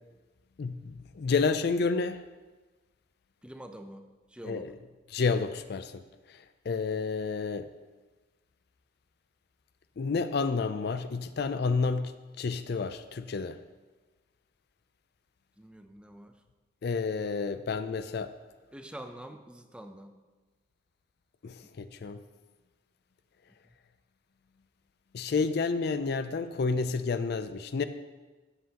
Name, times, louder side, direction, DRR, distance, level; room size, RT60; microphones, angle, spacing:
voice 1, 0.6-2.2 4.4-4.7 5.1-7.7 10.0-13.6 16.8-18.3 21.4-22.2 25.1-27.8, left 4 dB, 55° left, 11 dB, 0.4 m, -30 dB
voice 2, 3.4-4.7 15.6-16.3 18.7-20.2, right 1 dB, 5° right, 7 dB, 0.5 m, -46 dB
13.0 x 7.7 x 2.9 m, 1.2 s
head